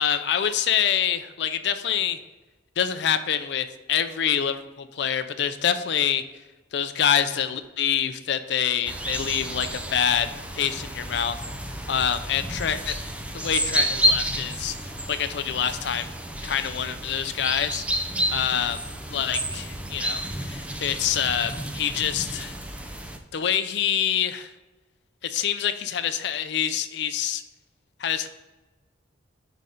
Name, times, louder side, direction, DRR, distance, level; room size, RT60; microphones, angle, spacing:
voice 1, 0.0-2.2 2.8-6.2 6.7-10.3 10.5-11.4 11.9-12.9 13.3-14.8 15.1-16.1 16.4-17.8 18.3-18.8 19.1-22.5 23.3-24.5 25.2-27.4 28.0-28.3, left 9 dB, 60° left, 11 dB, 0.4 m, -26 dB
sound 1, 8.8-23.2, equal, 5° right, 0.4 m, -30 dB
5.6 x 4.0 x 4.8 m, 1.1 s
head